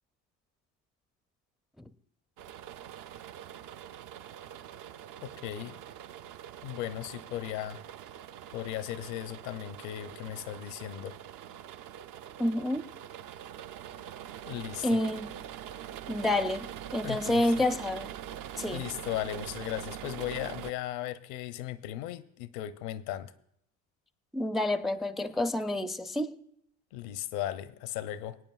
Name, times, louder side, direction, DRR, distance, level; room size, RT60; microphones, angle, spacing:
sound 1, 2.4-20.7, right 10 dB, 55° right, 0.5 m, -44 dB
voice 1, 5.2-5.8 6.6-7.8 8.5-11.2 14.5-15.0 17.0-17.7 18.6-23.3 26.9-28.4, left 12 dB, 70° left, 0.7 m, -37 dB
voice 2, 12.4-12.9 14.8-15.4 16.1-18.1 18.6-18.8 24.3-26.3, left 1 dB, ahead, 0.4 m, -29 dB
25.0 x 8.8 x 2.3 m
hypercardioid pair, 75°, 40 cm